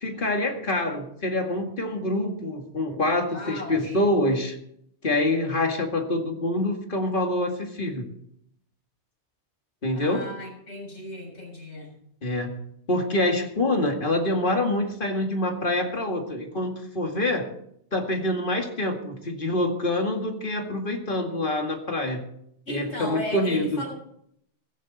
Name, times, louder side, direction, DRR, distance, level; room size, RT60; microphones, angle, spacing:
voice 1, 0.0-4.6 5.0-8.1 9.8-10.2 12.2-12.5 12.9-17.5 17.9-22.2 22.7-23.8, left 1 dB, 50° left, 3 dB, 2.3 m, -26 dB
voice 2, 3.3-4.1 9.9-12.0 22.7-23.9, equal, 90° left, -2 dB, 7.0 m, -36 dB
16.0 x 15.0 x 4.1 m, 0.71 s
omnidirectional pair, 1.2 m